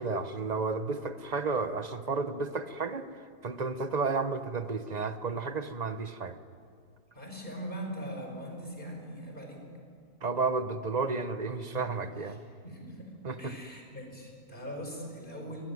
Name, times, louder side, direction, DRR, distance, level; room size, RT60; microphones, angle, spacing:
voice 1, 0.0-3.1 3.4-6.4 10.2-12.4 13.2-13.5, right 4 dB, 30° right, 10 dB, 0.9 m, -32 dB
voice 2, 7.1-9.7 12.2-12.4 12.6-13.1 13.4-15.6, equal, 30° left, 2 dB, 5.4 m, -41 dB
22.0 x 21.5 x 9.5 m, 2.3 s
omnidirectional pair, 1.8 m